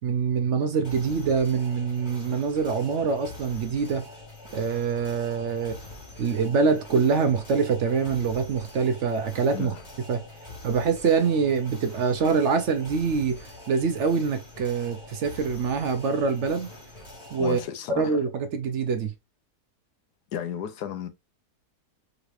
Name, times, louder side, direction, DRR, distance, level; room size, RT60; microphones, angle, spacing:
voice 1, 0.0-4.1 4.5-5.8 6.2-9.7 10.1-10.2 10.6-16.7 17.3-17.6 18.0-19.1, right 5 dB, 60° right, 0.8 m, -25 dB
sound 1, 0.8-17.6, left 2 dB, 25° left, 1.7 m, -45 dB
voice 2, 17.4-18.2 20.3-21.1, left 9 dB, 90° left, 1.3 m, -33 dB
3.8 x 3.1 x 2.5 m
omnidirectional pair, 1.6 m